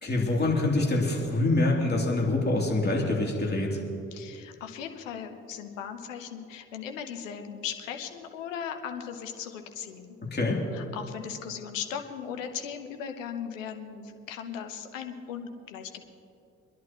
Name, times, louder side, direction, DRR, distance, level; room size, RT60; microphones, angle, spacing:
voice 1, 0.0-3.8 10.3-10.6, left 2 dB, 25° left, -2 dB, 3.0 m, -25 dB
voice 2, 4.1-10.2 10.7-16.0, left 8 dB, 85° left, 6 dB, 0.9 m, -38 dB
25.0 x 11.0 x 3.0 m, 2.7 s
hypercardioid pair, 50°, 38 cm